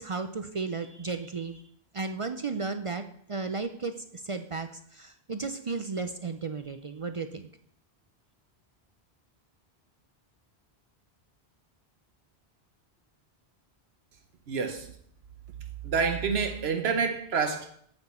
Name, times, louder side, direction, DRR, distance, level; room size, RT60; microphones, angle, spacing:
voice 1, 0.0-1.6 1.9-7.5, right 4 dB, 45° right, 8 dB, 0.4 m, -34 dB
voice 2, 14.5-14.9 15.8-17.7, right 5 dB, 80° right, 6 dB, 1.0 m, -28 dB
8.0 x 7.9 x 4.3 m, 0.66 s
omnidirectional pair, 1.1 m